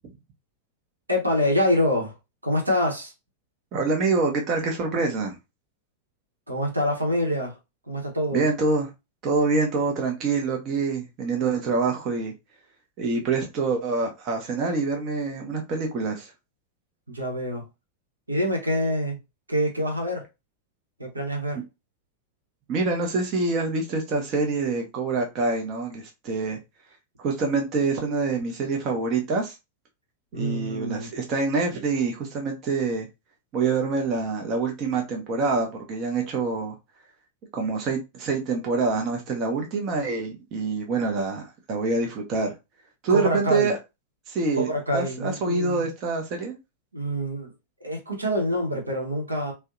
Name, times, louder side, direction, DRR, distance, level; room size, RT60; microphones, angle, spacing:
voice 1, 1.1-2.1 2.4-3.1 6.5-7.5 7.9-8.4 17.1-17.6 18.3-19.2 19.5-20.2 21.0-21.6 30.3-31.1 43.1-43.7 44.6-45.9 46.9-47.5 47.8-49.5, equal, 80° right, 0.9 m, -26 dB
voice 2, 3.7-5.4 8.3-8.9 9.2-12.3 13.0-16.3 22.7-26.6 27.2-29.6 30.3-33.1 33.5-36.8 37.5-42.5 43.0-43.8 44.3-46.6, right 4 dB, 35° right, 0.6 m, -26 dB
2.6 x 2.1 x 2.5 m
figure-of-eight pair, 90°, 0 cm